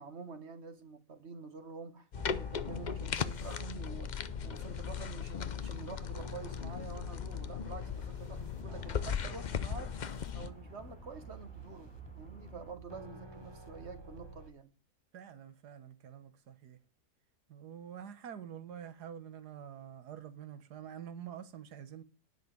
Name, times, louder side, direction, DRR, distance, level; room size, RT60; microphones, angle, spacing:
voice 1, 0.0-10.0 10.3-14.7, right 4 dB, 45° right, 1.4 m, -48 dB
sound 1, 2.1-10.5, left 7 dB, 85° left, 0.4 m, -38 dB
sound 2, 2.1-14.5, right 1 dB, 20° right, 0.7 m, -51 dB
sound 3, 4.2-12.7, left 1 dB, 5° left, 1.9 m, -54 dB
voice 2, 15.1-16.8 17.5-22.0, right 9 dB, 75° right, 1.7 m, -47 dB
10.5 x 5.9 x 7.4 m
omnidirectional pair, 1.7 m